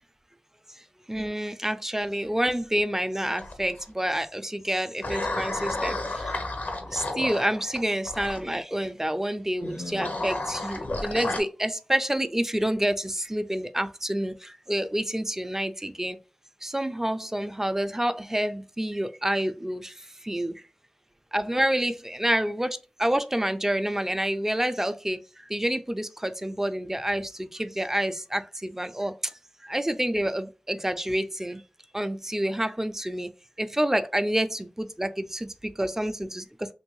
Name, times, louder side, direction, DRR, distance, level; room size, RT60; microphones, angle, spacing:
voice 1, 1.1-6.3 6.9-16.2 16.6-19.9 20.2-20.6 21.3-25.2 25.5-29.3 29.6-31.6 31.9-33.3 33.6-36.7, right 1 dB, 15° right, 0.4 m, -28 dB
sound 1, 3.4-3.8 5.0-8.4 9.6-11.4, left 2 dB, 85° left, 0.6 m, -32 dB
3.0 x 2.6 x 3.0 m
wide cardioid pair, 40°, 3 cm